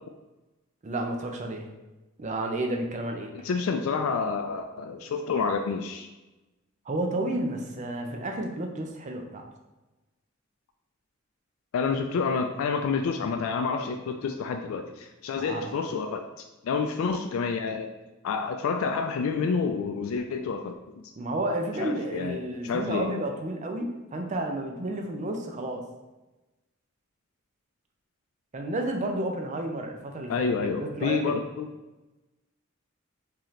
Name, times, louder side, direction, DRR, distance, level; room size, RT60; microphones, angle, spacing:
voice 1, 0.8-1.7 2.2-3.3 6.9-9.5 15.3-15.8 21.2-25.8 28.5-31.4, right 1 dB, 35° right, 3 dB, 0.5 m, -31 dB
voice 2, 3.4-6.1 11.7-17.9 18.2-20.8 21.8-23.1 30.3-31.7, left 5 dB, 85° left, 5 dB, 0.3 m, -29 dB
3.9 x 2.8 x 3.1 m, 1.1 s
head